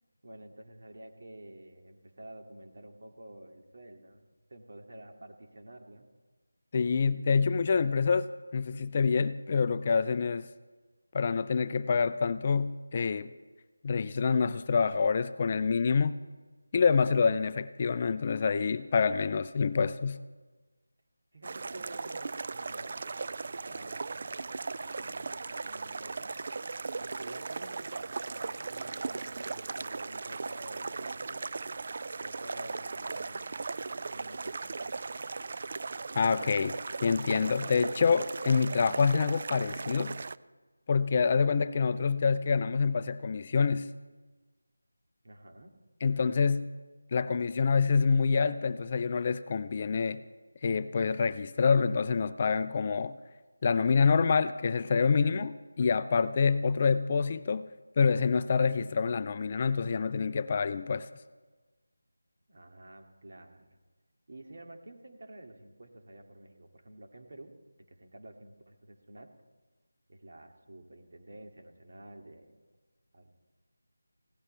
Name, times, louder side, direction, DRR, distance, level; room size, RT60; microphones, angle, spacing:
voice 1, 0.2-4.2 4.5-6.1 21.3-22.9 23.4-26.3 27.0-31.5 32.2-33.7 34.1-34.9 45.2-45.7 62.5-63.8 64.3-67.5 67.9-69.3 70.1-72.5 73.1-73.3, right 1 dB, 60° right, 3 dB, 2.4 m, -50 dB
voice 2, 6.7-10.5 11.1-13.3 13.8-16.2 16.7-20.2 36.2-40.2 40.9-43.9 46.0-46.7 47.1-50.2 50.6-53.2 53.6-57.7 58.0-61.1, left 5 dB, 30° left, 14 dB, 0.4 m, -27 dB
sound 1, 21.4-40.4, right 4 dB, 45° right, 0.3 m, -38 dB
19.5 x 17.0 x 3.3 m, 1.3 s
figure-of-eight pair, 170°, 0 cm